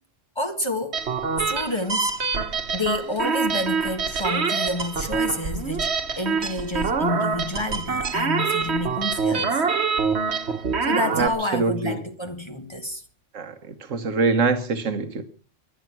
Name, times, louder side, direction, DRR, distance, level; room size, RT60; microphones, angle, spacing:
voice 1, 0.3-1.0 1.4-2.1 2.7-9.6 10.8-13.0, left 1 dB, 20° left, 1.8 m, -29 dB
sound 1, 0.9-11.3, right 5 dB, 60° right, 1.6 m, -25 dB
voice 2, 11.2-12.0 13.3-13.5 13.9-15.2, right 4 dB, 90° right, 1.6 m, -24 dB
23.5 x 10.0 x 6.1 m
omnidirectional pair, 1.3 m